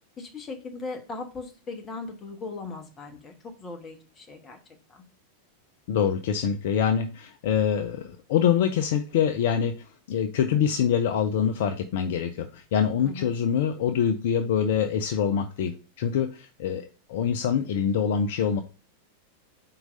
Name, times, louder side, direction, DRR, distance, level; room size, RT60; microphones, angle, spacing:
voice 1, 0.2-4.6 4.9-5.0 13.0-13.3, left 3 dB, 25° left, 4 dB, 1.3 m, -38 dB
voice 2, 5.9-18.6, left 8 dB, 55° left, 8 dB, 0.5 m, -25 dB
4.5 x 3.9 x 5.3 m, 0.36 s
figure-of-eight pair, 90°, 0 cm